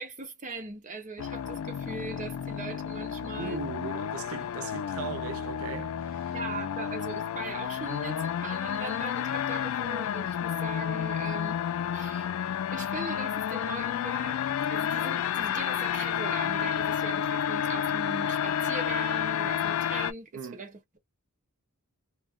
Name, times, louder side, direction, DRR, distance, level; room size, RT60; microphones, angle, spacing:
voice 1, 0.0-3.6 6.3-11.7 11.9-12.3 12.7-14.4 14.7-21.0, right 3 dB, 35° right, 0.9 m, -40 dB
sound 1, 1.2-20.1, left 9 dB, 70° left, 0.3 m, -31 dB
voice 2, 3.4-6.3 20.3-20.6, right 5 dB, 70° right, 0.4 m, -38 dB
2.3 x 2.0 x 3.6 m
head